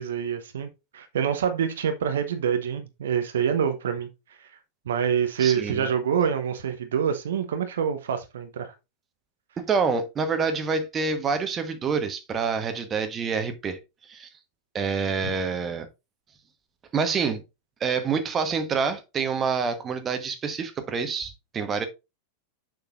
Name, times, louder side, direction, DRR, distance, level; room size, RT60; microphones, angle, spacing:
voice 1, 0.0-4.1 4.4-4.5 4.9-8.7, right 7 dB, 60° right, 0.9 m, -26 dB
voice 2, 5.4-5.9 9.6-13.8 14.1-14.3 14.7-15.9 16.9-17.4 17.8-21.9, right 5 dB, 25° right, 1.2 m, -27 dB
6.8 x 6.5 x 2.5 m
figure-of-eight pair, 90°, 0 cm